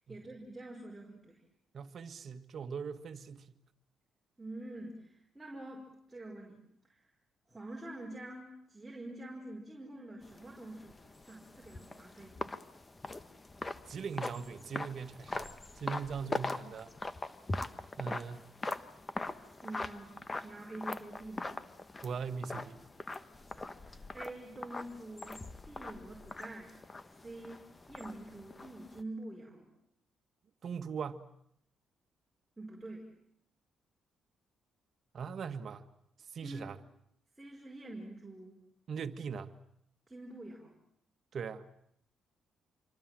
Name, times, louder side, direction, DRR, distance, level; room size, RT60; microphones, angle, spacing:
voice 1, 0.1-1.4 4.4-7.0 7.5-12.4 19.6-20.2 20.4-21.6 23.4-26.7 27.2-29.7 32.6-33.1 36.4-36.7 37.4-38.6 40.1-40.8, right 1 dB, 10° right, 5.2 m, -47 dB
voice 2, 1.7-3.6 13.9-16.9 18.0-18.5 22.0-22.8 30.6-31.3 35.1-35.9 36.3-36.8 38.9-39.5 41.3-41.7, right 6 dB, 55° right, 1.7 m, -40 dB
sound 1, 10.2-29.0, left 2 dB, 25° left, 1.4 m, -42 dB
26.5 x 25.0 x 7.8 m
cardioid pair, 90°, 0 cm